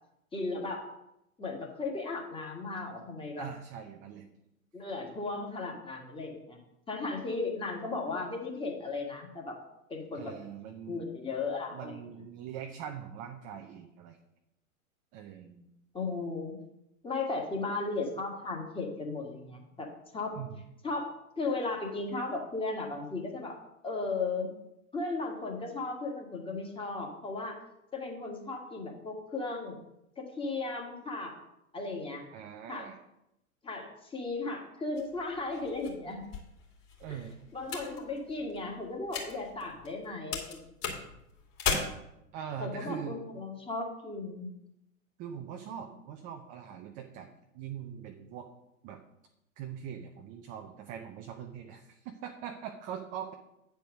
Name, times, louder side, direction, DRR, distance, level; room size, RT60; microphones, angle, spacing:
voice 1, 0.3-0.8 1.4-3.5 4.7-6.6 6.9-9.6 9.9-10.3 10.9-12.0 15.9-16.6 17.0-19.9 20.1-20.4 20.8-21.1 21.4-23.6 23.8-24.5 24.9-27.6 27.9-29.8 30.2-31.3 31.7-32.2 32.7-32.9 33.6-36.2 37.1-37.2 37.5-40.6 42.6-44.5, left 3 dB, 10° left, 1 dB, 1.7 m, -36 dB
voice 2, 3.4-4.3 10.1-11.1 11.7-14.2 15.1-15.7 20.3-20.6 32.3-33.0 37.0-37.4 42.3-43.2 45.2-47.3 47.5-48.5 48.8-49.0 49.6-53.3, right 8 dB, 20° right, 5 dB, 0.4 m, -42 dB
sound 1, 35.0-40.0 40.3-41.7, left 6 dB, 35° left, 2.9 m, -38 dB
9.2 x 4.6 x 6.4 m, 0.84 s
figure-of-eight pair, 105°, 43 cm